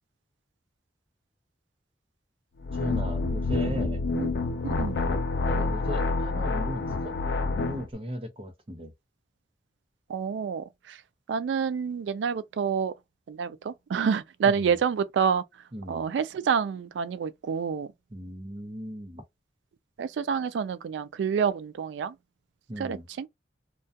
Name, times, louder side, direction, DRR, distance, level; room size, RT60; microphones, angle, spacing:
sound 1, 2.6-7.9, left 3 dB, 75° left, 0.4 m, -28 dB
voice 1, 2.7-4.0 5.5-8.9 14.4-14.8 15.7-16.1 18.1-19.2 22.7-23.1, equal, 30° right, 0.6 m, -37 dB
voice 2, 4.6-5.0 10.1-11.0 11.3-12.9 13.3-15.4 15.9-17.9 20.0-22.2 22.8-23.3, right 6 dB, 90° right, 0.3 m, -28 dB
2.2 x 2.2 x 2.7 m
head